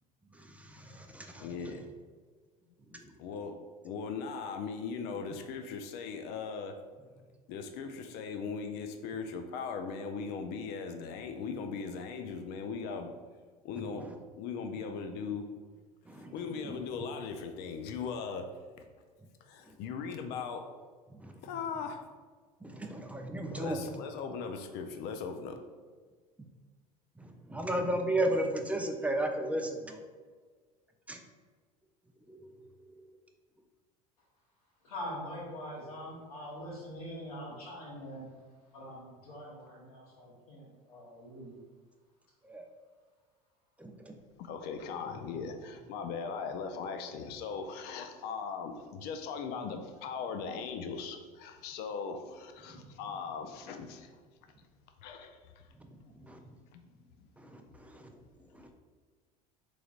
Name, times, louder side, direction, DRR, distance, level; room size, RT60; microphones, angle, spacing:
voice 1, 0.4-1.5 2.9-3.1 13.9-14.0 16.1-16.3 16.6-16.8 21.2-21.4 22.6-23.8 27.2-30.0 31.1-31.2 32.3-32.4 42.4-42.7 43.8-44.2 52.8-52.9 56.2-56.4 57.4-58.0 58.5-58.7, right 1 dB, 5° right, 4 dB, 0.4 m, -34 dB
voice 2, 1.4-1.8 3.2-3.5 3.8-6.8 7.5-13.1 13.6-15.5 16.3-18.4 19.5-20.6 21.4-22.1 23.5-25.6 44.4-54.1 55.0-55.4 56.7-56.8, left 5 dB, 60° left, 6 dB, 0.5 m, -39 dB
voice 3, 34.8-38.3 38.7-41.6, equal, 85° left, -4 dB, 1.3 m, -43 dB
3.8 x 3.2 x 2.4 m, 1.5 s
hypercardioid pair, 80°, 19 cm